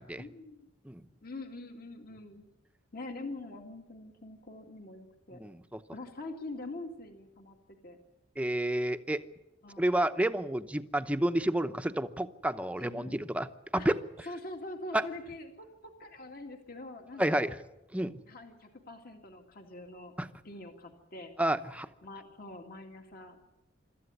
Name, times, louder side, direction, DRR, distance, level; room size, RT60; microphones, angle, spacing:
voice 1, 0.2-0.7 1.2-2.5 2.9-5.4 5.9-7.6 7.8-8.0 9.6-9.9 12.8-13.2 13.8-13.9 14.2-17.5 18.3-20.1 20.4-21.3 22.0-23.4, left 2 dB, 50° left, 4 dB, 2.2 m, -44 dB
voice 2, 5.3-5.8 8.4-9.2 9.8-13.5 13.7-14.0 14.9-15.1 17.2-17.6 17.9-18.1 20.2-20.3 21.4-21.9, right 1 dB, 5° right, 10 dB, 0.8 m, -30 dB
25.5 x 13.5 x 9.8 m, 0.95 s
head